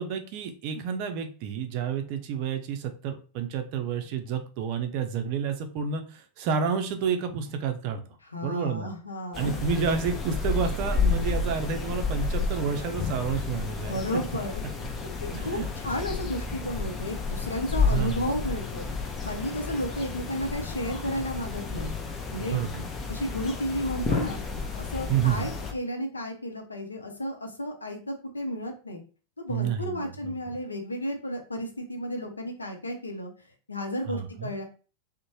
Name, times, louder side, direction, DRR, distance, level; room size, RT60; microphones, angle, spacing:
voice 1, 0.0-8.0 8.4-8.9 9.4-14.0 15.3-15.7 17.9-18.2 22.5-22.9 25.1-25.5 29.5-30.4 34.1-34.5, right 6 dB, 45° right, 7 dB, 0.5 m, -30 dB
voice 2, 8.2-9.6 13.8-14.6 15.4-15.6 15.8-18.8 19.2-21.9 22.3-22.6 23.1-24.4 24.8-29.0 29.4-33.3 33.7-34.6, left 1 dB, 80° left, 3 dB, 0.6 m, -33 dB
sound 1, 9.3-25.7, left 4 dB, 20° left, 0.5 m, -31 dB
2.6 x 2.1 x 3.0 m, 0.36 s
figure-of-eight pair, 90°, 0 cm